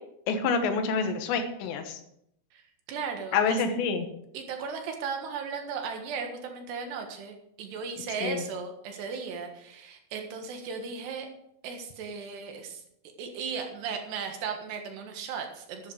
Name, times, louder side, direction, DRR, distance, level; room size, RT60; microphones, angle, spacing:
voice 1, 0.3-2.0 3.3-4.1 8.2-8.4, left 5 dB, 85° left, 7 dB, 3.5 m, -27 dB
voice 2, 2.9-3.6 4.3-11.3 11.6-12.8 13.2-15.9, right 5 dB, 75° right, 4 dB, 3.7 m, -36 dB
12.0 x 9.9 x 4.9 m, 0.75 s
omnidirectional pair, 5.0 m